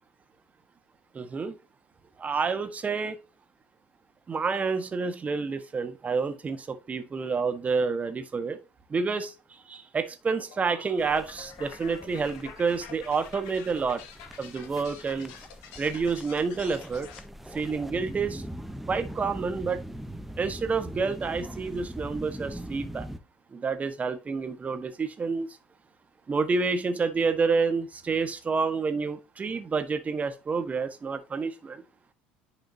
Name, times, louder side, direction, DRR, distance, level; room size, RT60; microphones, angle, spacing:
voice 1, 1.1-1.5 2.2-3.2 4.3-8.6 8.9-14.0 14.4-15.3 15.8-17.1 17.5-18.4 18.9-19.8 20.4-23.1 23.5-25.5 26.3-31.8, right 4 dB, 30° right, 1.5 m, -29 dB
sound 1, 10.3-17.2, left 7 dB, 65° left, 2.3 m, -47 dB
sound 2, 11.0-23.2, equal, 5° right, 0.9 m, -42 dB
10.5 x 4.9 x 2.9 m
hypercardioid pair, 70°, 5 cm